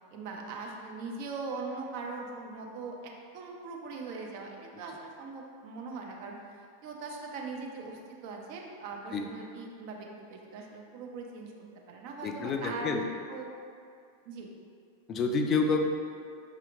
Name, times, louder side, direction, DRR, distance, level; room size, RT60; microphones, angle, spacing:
voice 1, 0.1-11.5 11.9-13.5 14.3-14.5, right 3 dB, 45° right, 0 dB, 0.5 m, -41 dB
voice 2, 12.2-13.0 15.1-15.8, left 4 dB, 30° left, 4 dB, 0.3 m, -28 dB
4.9 x 2.8 x 2.4 m, 2.3 s
figure-of-eight pair, 90°, 0 cm